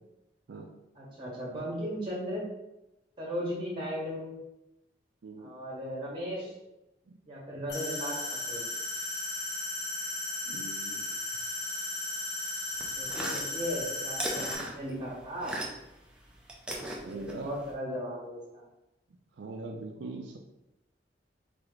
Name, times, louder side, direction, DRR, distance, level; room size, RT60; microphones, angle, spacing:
voice 1, 0.9-2.4 3.2-4.3 5.4-6.5 7.2-8.6 13.0-15.6 17.1-18.6, equal, 25° right, -5 dB, 1.5 m, -36 dB
sound 1, 7.7-14.6, left 2 dB, 85° left, 1.4 m, -35 dB
voice 2, 10.5-11.1 17.0-17.5 19.4-20.4, right 3 dB, 80° right, 3 dB, 0.4 m, -41 dB
sound 2, 12.7-16.0 16.2-17.7, right 1 dB, 5° right, 0.6 m, -38 dB
3.5 x 3.3 x 3.9 m, 0.93 s
head